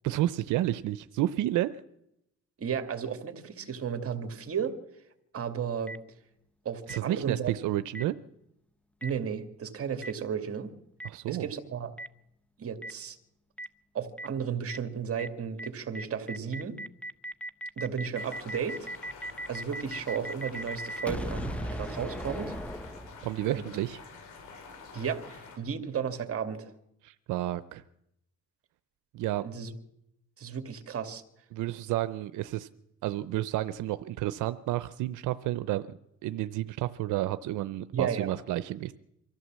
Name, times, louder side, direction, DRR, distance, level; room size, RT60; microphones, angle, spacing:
voice 1, 0.0-1.7 6.9-8.1 11.0-11.5 23.2-24.0 27.0-27.8 29.1-29.5 31.5-32.7 33.0-38.9, right 14 dB, 85° right, 13 dB, 0.6 m, -31 dB
voice 2, 2.6-4.8 5.3-5.9 6.6-7.5 9.0-10.7 11.3-11.9 12.6-13.2 13.9-16.8 17.8-18.9 19.5-22.5 23.5-23.7 24.9-26.7 29.4-29.7 30.4-31.2 37.9-38.3, right 7 dB, 50° right, 8 dB, 2.2 m, -34 dB
Boom, 5.9-6.0 6.9-7.0 7.9-8.0 9.0-9.1 10.0-10.1 11.0-11.1 12.0-12.1 12.8-12.9 13.6-13.7 14.2-14.3 14.7-14.8 15.2-15.3 15.6-15.7 15.9-23.5, equal, 5° left, 0.8 m, -37 dB
sound 1, 18.1-25.6, left 4 dB, 80° left, 4.9 m, -48 dB
24.0 x 14.5 x 7.5 m, 0.83 s
cardioid pair, 90°, 30 cm